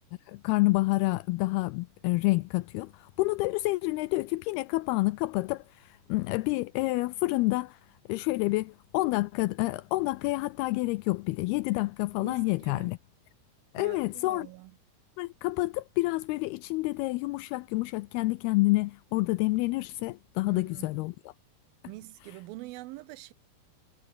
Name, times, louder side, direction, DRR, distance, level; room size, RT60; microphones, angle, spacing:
voice 1, 0.3-7.8 8.1-13.0 13.7-14.5 15.2-21.3, left 21 dB, 85° left, 2.2 m, -28 dB
voice 2, 12.2-12.9 13.8-14.7 20.5-21.0 21.9-23.3, right 19 dB, 90° right, 2.1 m, -45 dB
omnidirectional pair, 5.1 m